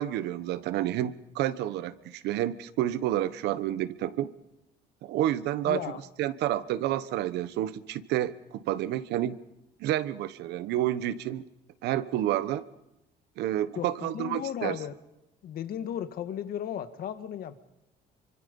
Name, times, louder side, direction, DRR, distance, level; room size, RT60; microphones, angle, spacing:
voice 1, 0.0-4.3 5.0-5.8 6.2-9.4 9.8-11.5 11.8-12.6 13.4-14.8, right 13 dB, 85° right, 14 dB, 1.1 m, -29 dB
voice 2, 5.6-6.0 13.7-14.9 15.4-17.6, left 10 dB, 65° left, 11 dB, 1.7 m, -35 dB
25.5 x 25.0 x 5.4 m, 0.89 s
cardioid pair, 110°, 17 cm